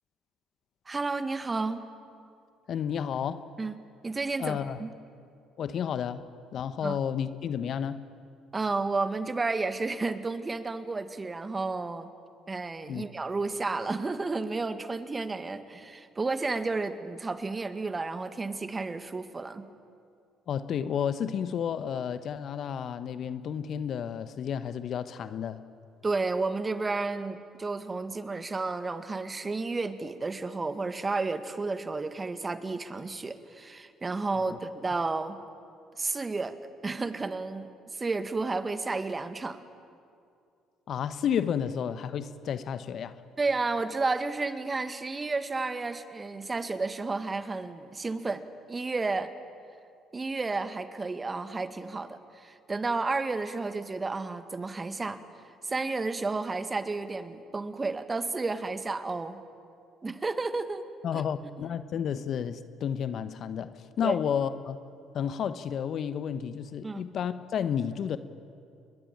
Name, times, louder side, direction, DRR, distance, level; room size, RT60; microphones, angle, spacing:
voice 1, 0.9-1.9 3.6-3.7 4.0-4.9 6.8-7.0 8.5-12.1 12.5-19.7 26.0-35.4 36.0-36.6 36.8-39.6 43.4-49.3 50.1-55.2 55.6-59.4 60.0-60.9 61.1-61.2 64.0-64.2 66.8-67.0, right 3 dB, 25° right, 1.9 m, -32 dB
voice 2, 2.7-3.4 4.4-4.8 5.6-6.2 6.5-8.1 12.9-13.0 20.5-25.6 34.5-34.6 40.9-43.2 61.0-64.8 65.1-68.2, left 8 dB, 55° left, 1.1 m, -31 dB
29.5 x 22.0 x 8.8 m
hypercardioid pair, 55°, 0 cm